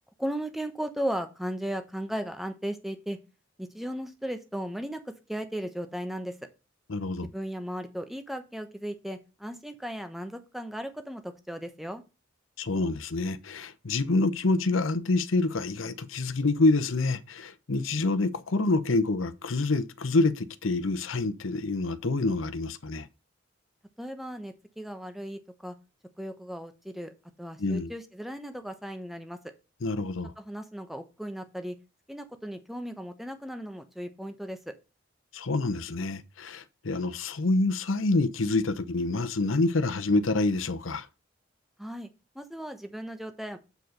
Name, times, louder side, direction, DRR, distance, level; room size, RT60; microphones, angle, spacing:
voice 1, 0.2-3.2 3.6-6.3 7.3-12.0 24.0-25.7 26.2-27.1 27.4-29.4 30.4-31.8 32.1-34.7 41.8-42.1 42.3-43.6, equal, ahead, 0.9 m, -36 dB
voice 2, 6.9-7.3 12.6-23.1 27.6-27.9 29.8-30.3 35.3-41.1, left 2 dB, 90° left, 0.8 m, -27 dB
8.0 x 4.8 x 5.2 m
head